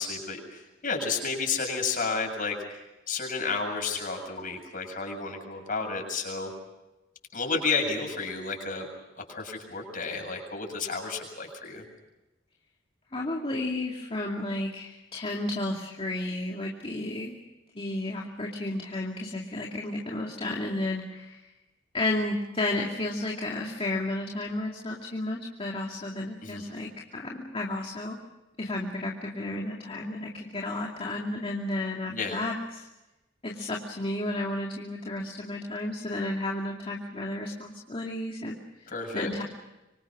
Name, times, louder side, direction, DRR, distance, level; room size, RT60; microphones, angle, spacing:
voice 1, 0.0-2.6 3.1-6.5 7.3-8.9 9.3-11.8 26.4-26.6 32.1-32.4 38.9-39.3, left 4 dB, 45° left, 2 dB, 7.4 m, -31 dB
voice 2, 13.1-17.4 17.7-21.5 21.9-28.2 28.6-32.9 33.4-38.9 39.1-39.4, left 2 dB, 30° left, -1 dB, 2.5 m, -32 dB
25.5 x 25.5 x 6.1 m, 1.0 s
head